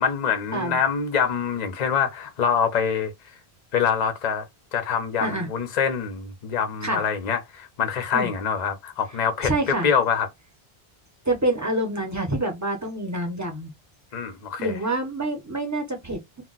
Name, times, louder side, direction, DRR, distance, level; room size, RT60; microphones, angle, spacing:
voice 1, 0.0-3.1 3.7-4.5 4.7-10.3 14.1-14.7, left 7 dB, 50° left, 0.6 m, -25 dB
voice 2, 9.4-9.9 11.2-13.7 14.6-16.4, right 1 dB, 20° right, 0.7 m, -27 dB
2.2 x 2.2 x 3.8 m
omnidirectional pair, 1.1 m